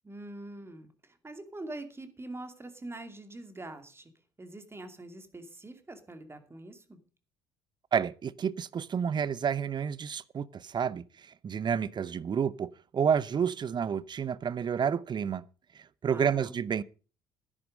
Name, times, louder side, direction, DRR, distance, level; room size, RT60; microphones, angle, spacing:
voice 1, 0.0-4.1 4.4-7.0 16.1-16.5, right 2 dB, 20° right, 2.5 m, -44 dB
voice 2, 7.9-11.0 11.4-15.4 16.0-16.8, right 7 dB, 35° right, 0.7 m, -30 dB
12.5 x 10.5 x 5.2 m
hypercardioid pair, 55°, 13 cm